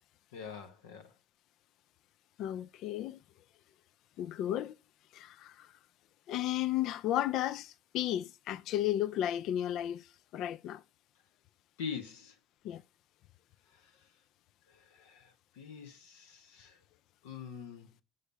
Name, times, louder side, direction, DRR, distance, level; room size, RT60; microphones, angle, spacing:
voice 1, 0.3-1.1 11.8-12.3 14.9-16.8 17.2-17.9, left 6 dB, 80° left, 0.9 m, -44 dB
voice 2, 2.4-3.2 4.2-4.7 5.1-5.7 6.3-10.1 10.3-10.8 12.6-12.8, left 12 dB, 60° left, 0.4 m, -33 dB
6.5 x 5.5 x 5.2 m
hypercardioid pair, 65°, 0 cm